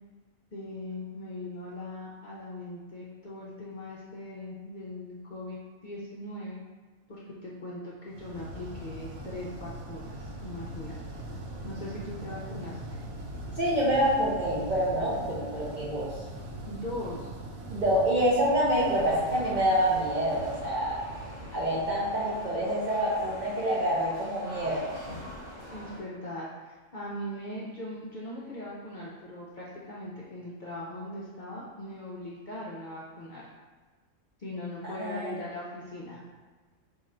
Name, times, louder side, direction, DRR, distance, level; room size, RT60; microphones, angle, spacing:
voice 1, 0.5-6.6 7.1-11.0 11.6-12.8 16.6-17.3 25.7-33.4 34.4-36.2, left 1 dB, 50° left, -6 dB, 0.5 m, -40 dB
sound 1, 8.1-23.1, right 1 dB, 90° right, 1.0 m, -41 dB
voice 2, 13.6-16.2 17.7-21.0 21.5-24.9 34.8-35.4, equal, 50° right, -6 dB, 0.6 m, -27 dB
sound 2, 18.7-26.0, equal, 35° left, 1.6 m, -44 dB
3.7 x 2.8 x 4.2 m, 1.3 s
omnidirectional pair, 1.4 m